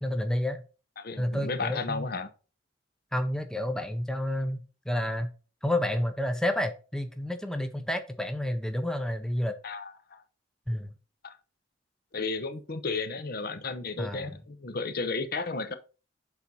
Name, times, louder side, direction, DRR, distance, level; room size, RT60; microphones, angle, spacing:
voice 1, 0.0-0.6 1.2-2.1 3.1-5.3 5.6-9.6 10.7-10.9 14.0-14.3, left 1 dB, 5° left, 0.6 m, -30 dB
voice 2, 1.0-2.3 9.6-10.2 11.2-11.4 12.1-15.7, left 3 dB, 55° left, 0.8 m, -33 dB
7.1 x 4.1 x 5.4 m
head